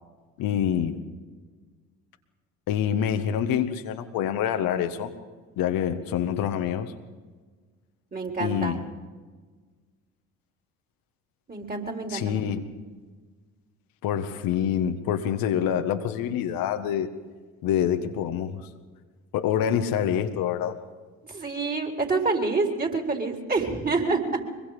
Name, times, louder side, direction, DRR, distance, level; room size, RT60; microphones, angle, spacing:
voice 1, 0.4-1.0 2.7-5.1 5.6-6.9 8.4-8.8 12.1-12.6 14.0-17.1 17.6-18.6 19.3-20.8, left 9 dB, 65° left, 7 dB, 1.7 m, -26 dB
voice 2, 8.1-8.8 11.5-12.6 21.3-24.5, right 3 dB, 25° right, 2 dB, 4.4 m, -27 dB
24.5 x 22.5 x 5.1 m, 1.4 s
hypercardioid pair, 50°, 38 cm